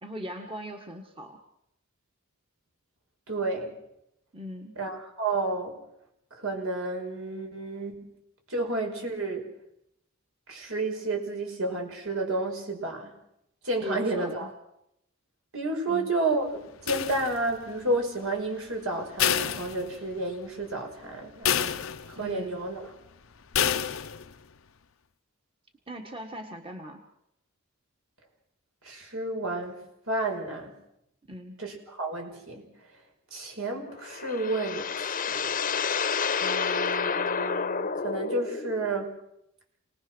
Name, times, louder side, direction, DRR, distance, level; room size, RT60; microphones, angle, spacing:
voice 1, 0.0-1.4 4.3-4.8 13.8-14.5 15.9-16.1 22.1-22.6 25.9-27.0 31.3-31.6, equal, 25° right, 3 dB, 1.6 m, -39 dB
voice 2, 3.3-3.8 4.8-5.8 6.3-8.1 8.5-9.4 10.5-13.1 13.6-14.5 15.5-21.8 22.1-22.9 28.8-30.8 31.6-32.7 33.3-34.9 35.3-35.8 36.4-39.2, right 2 dB, 75° right, 3 dB, 5.5 m, -31 dB
sound 1, 16.9-17.7 19.2-20.3 20.7-20.8 21.5-22.3 23.5-24.3, left 9 dB, 70° left, 0.8 m, -28 dB
sound 2, 33.8-39.0, left 6 dB, 40° left, 1.0 m, -29 dB
28.5 x 19.5 x 6.3 m, 0.81 s
head